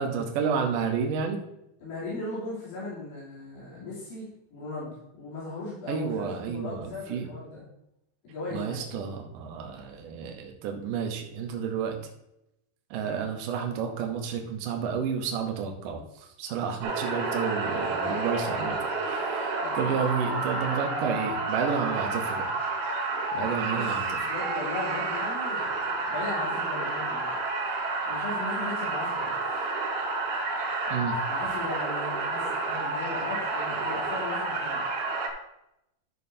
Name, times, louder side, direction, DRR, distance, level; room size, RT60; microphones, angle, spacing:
voice 1, 0.0-1.4 5.9-7.3 8.5-12.0 12.9-16.0 16.4-18.8 19.1-22.5 23.3-24.0 30.9-31.2, right 6 dB, 85° right, 2 dB, 1.8 m, -30 dB
voice 2, 1.8-7.7 8.2-8.9 18.0-18.4 19.6-19.8 23.7-27.3 28.0-29.3 31.3-34.8, left 2 dB, 75° left, -10 dB, 5.5 m, -37 dB
sound 1, 16.8-35.3, right 3 dB, 60° right, 3.7 m, -30 dB
13.0 x 6.8 x 2.8 m, 0.83 s
omnidirectional pair, 5.4 m